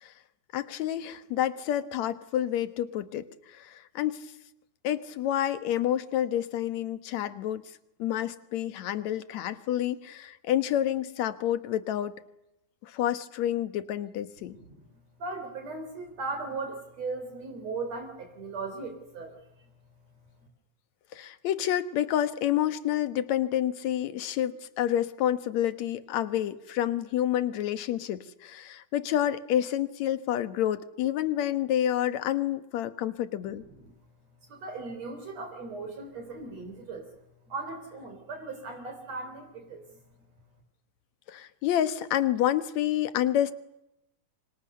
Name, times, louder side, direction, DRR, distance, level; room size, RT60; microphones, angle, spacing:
voice 1, 0.5-4.3 4.8-7.6 8.0-12.1 12.8-14.6 21.1-33.6 41.3-43.5, left 11 dB, 70° left, 13 dB, 2.5 m, -29 dB
voice 2, 14.4-14.8 15.2-19.4 33.4-33.9 34.5-37.1 37.5-40.0, right 3 dB, 55° right, 5 dB, 4.8 m, -38 dB
30.0 x 25.0 x 6.8 m, 0.88 s
omnidirectional pair, 3.5 m